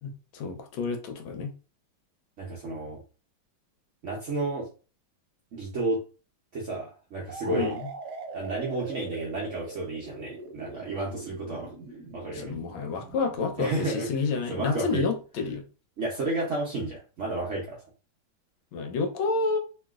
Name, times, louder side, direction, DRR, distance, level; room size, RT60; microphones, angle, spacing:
voice 1, 0.0-1.5 7.5-7.8 12.4-15.6 18.7-19.6, left 4 dB, 80° left, 1.5 m, -29 dB
voice 2, 2.4-3.0 4.0-4.7 5.5-6.0 6.5-7.8 8.3-11.7 12.1-12.5 13.6-14.2 14.5-15.1 16.0-17.8, right 2 dB, 80° right, 0.6 m, -31 dB
sound 1, 7.3-15.0, right 4 dB, 65° right, 1.1 m, -42 dB
3.1 x 2.8 x 2.3 m
omnidirectional pair, 2.2 m